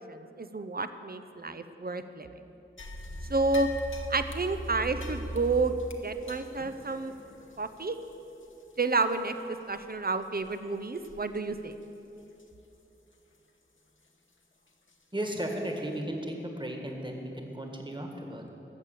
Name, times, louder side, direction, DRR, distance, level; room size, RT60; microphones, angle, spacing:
voice 1, 0.1-2.3 3.3-3.7 4.1-5.8 6.0-7.1 7.6-8.0 8.8-9.3 9.7-11.7, right 3 dB, 50° right, 10 dB, 0.7 m, -30 dB
sound 1, 2.8-9.4 9.7-9.8 10.3-10.6 11.0-11.4 11.7-11.8 12.4-12.5 14.9-15.0 15.6-15.7, equal, 70° left, 1.2 m, -41 dB
voice 2, 15.1-18.5, right 1 dB, 25° right, 2 dB, 1.8 m, -35 dB
14.5 x 6.8 x 8.4 m, 3.0 s
wide cardioid pair, 45°, 21 cm